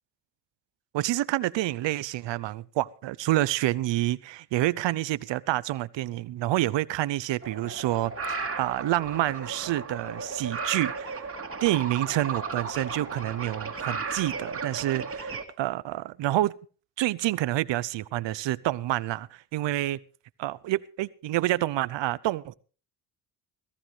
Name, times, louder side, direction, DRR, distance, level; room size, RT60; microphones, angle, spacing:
voice 1, 0.9-11.3 11.6-16.5 17.0-20.0 20.4-22.6, right 15 dB, 85° right, 0.8 m, -28 dB
sound 1, 7.4-15.4, right 4 dB, 30° right, 2.6 m, -35 dB
18.0 x 15.0 x 3.3 m
cardioid pair, 80°, 43 cm